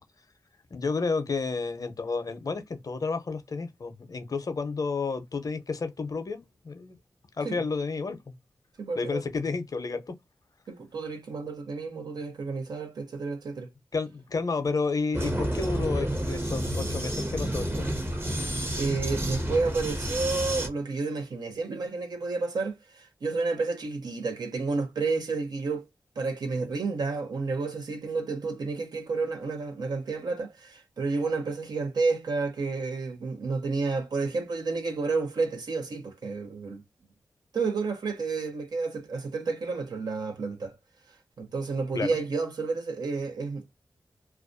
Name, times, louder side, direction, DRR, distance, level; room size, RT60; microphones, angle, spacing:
voice 1, 0.7-6.9 7.4-8.3 9.0-10.1 13.9-17.9 41.9-42.2, left 4 dB, 60° left, 0.6 m, -31 dB
voice 2, 8.8-9.2 10.7-13.7 18.8-25.9 26.2-36.8 37.5-40.7 41.4-43.7, right 4 dB, 75° right, 0.7 m, -30 dB
Vehicle, 15.1-20.7, right 1 dB, 30° right, 0.8 m, -30 dB
2.3 x 2.2 x 2.5 m
cardioid pair, 40°, 7 cm